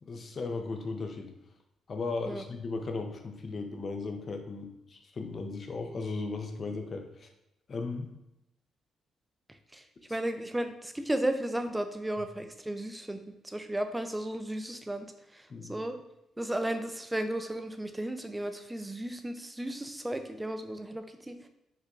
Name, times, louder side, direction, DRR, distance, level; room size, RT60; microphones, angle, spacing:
voice 1, 0.0-1.3 1.9-7.3 7.7-8.1 15.5-15.8, left 3 dB, 45° left, 5 dB, 0.7 m, -36 dB
voice 2, 10.1-15.1 15.3-16.0 16.4-21.5, right 1 dB, 10° right, 7 dB, 0.5 m, -34 dB
5.6 x 2.2 x 3.8 m, 0.86 s
cardioid pair, 90°, 0 cm